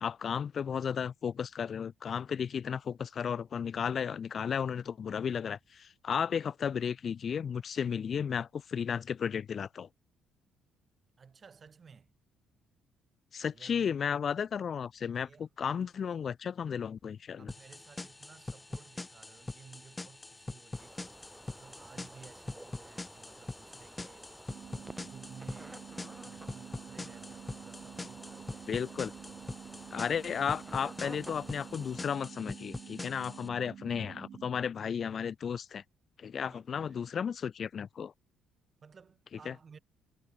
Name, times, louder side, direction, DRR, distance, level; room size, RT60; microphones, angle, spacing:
voice 1, 0.0-9.9 13.3-17.5 28.7-29.1 29.9-35.8 36.2-38.1 39.5-39.6, left 7 dB, 45° left, 0.4 m, -34 dB
voice 2, 11.2-12.1 13.5-14.0 15.1-15.5 15.8-16.1 17.4-21.2 21.5-24.4 25.0-25.9 26.2-28.7 36.4-37.3 38.8-39.8, right 5 dB, 35° right, 3.6 m, -56 dB
sound 1, 17.5-33.5, left 2 dB, 15° left, 1.3 m, -44 dB
sound 2, 20.7-32.1, right 1 dB, 10° right, 3.1 m, -52 dB
sound 3, 24.5-34.5, right 8 dB, 55° right, 0.8 m, -49 dB
cardioid pair, 100°, 0 cm